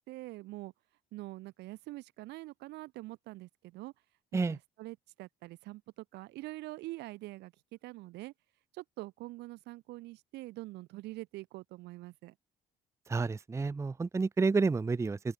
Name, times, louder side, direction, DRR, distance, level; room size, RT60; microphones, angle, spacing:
voice 1, 0.1-0.7 1.1-3.9 4.3-8.3 8.7-12.3, right 19 dB, 85° right, 2.5 m, -45 dB
voice 2, 13.1-15.3, right 4 dB, 15° right, 0.6 m, -30 dB
open air
cardioid pair, 110°, 17 cm